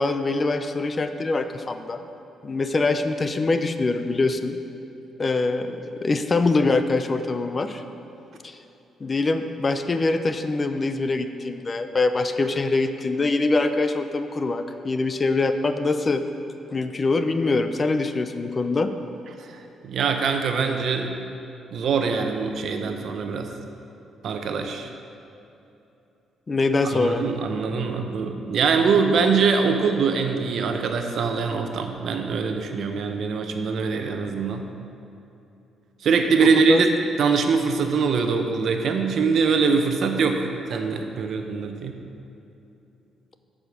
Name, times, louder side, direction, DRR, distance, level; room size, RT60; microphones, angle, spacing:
voice 1, 0.0-2.0 2.4-4.6 5.2-7.8 8.4-8.6 9.0-16.2 16.7-18.9 26.5-27.2 36.4-36.8, left 3 dB, 30° left, 9 dB, 0.5 m, -24 dB
voice 2, 19.5-21.1 21.7-23.5 24.2-24.9 27.0-34.6 36.0-36.9 37.2-41.9, right 5 dB, 65° right, 5 dB, 0.8 m, -23 dB
8.6 x 5.0 x 6.5 m, 2.8 s
cardioid pair, 90°, 0 cm